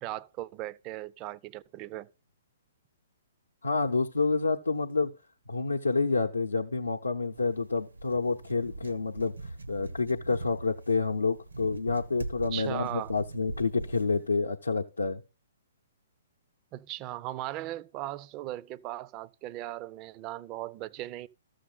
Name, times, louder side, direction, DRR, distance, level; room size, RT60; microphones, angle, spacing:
voice 1, 0.0-2.1 12.5-13.1 16.7-21.3, right 15 dB, 30° right, 0.4 m, -38 dB
voice 2, 3.6-5.1 5.5-15.2, left 4 dB, 80° left, 0.6 m, -28 dB
sound 1, 7.3-14.3, right 2 dB, 85° right, 0.8 m, -42 dB
13.5 x 6.5 x 3.8 m
figure-of-eight pair, 120°, 0 cm